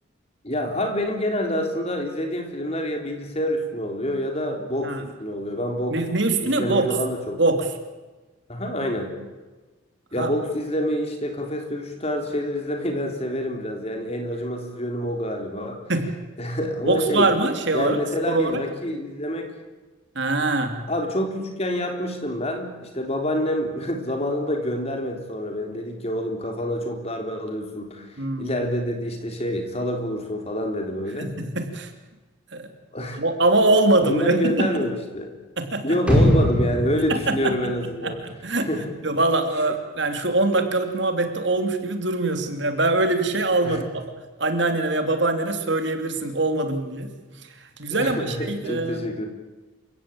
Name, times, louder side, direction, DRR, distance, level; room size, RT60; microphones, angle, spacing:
voice 1, 0.4-6.0 6.4-7.4 8.5-9.1 10.1-15.8 16.4-17.3 17.7-19.5 20.9-28.1 28.4-31.4 32.9-33.2 34.0-35.3 35.8-38.2 38.7-38.9 43.6-43.8 47.9-49.3, equal, 30° left, 4 dB, 3.7 m, -27 dB
voice 2, 5.9-6.9 7.4-7.7 10.2-10.3 15.9-16.1 16.8-18.0 18.3-18.6 20.1-20.8 28.2-28.5 31.2-31.9 32.5-32.7 33.1-34.7 35.6-36.0 37.1-37.5 38.0-44.0 44.4-47.1 47.4-49.1, right 2 dB, 60° right, 7 dB, 2.9 m, -23 dB
sound 1, 36.1-38.2 38.6-38.7, equal, 5° right, 5.1 m, -22 dB
28.5 x 16.5 x 8.8 m, 1.2 s
head